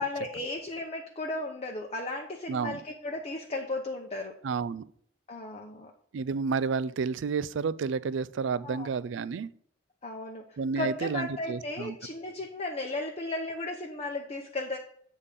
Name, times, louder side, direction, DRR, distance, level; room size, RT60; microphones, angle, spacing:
voice 1, 0.0-4.3 5.3-5.9 8.6-8.9 10.0-10.4 10.8-14.8, left 2 dB, 30° left, 1 dB, 0.8 m, -35 dB
voice 2, 2.5-2.8 4.4-4.8 6.1-9.5 10.6-12.0, right 5 dB, 65° right, 17 dB, 0.4 m, -30 dB
8.3 x 3.6 x 6.5 m, 0.65 s
head